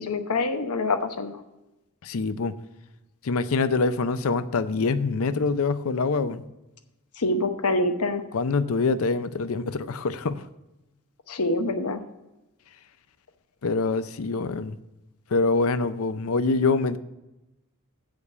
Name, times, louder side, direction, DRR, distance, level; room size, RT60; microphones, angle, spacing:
voice 1, 0.0-1.4 7.2-8.2 11.3-12.0, left 2 dB, 85° left, 7 dB, 0.9 m, -25 dB
voice 2, 2.0-2.5 3.2-6.4 8.3-10.4 13.6-14.8 15.3-17.0, left 4 dB, 65° left, 13 dB, 0.5 m, -25 dB
8.1 x 5.2 x 7.1 m, 0.98 s
head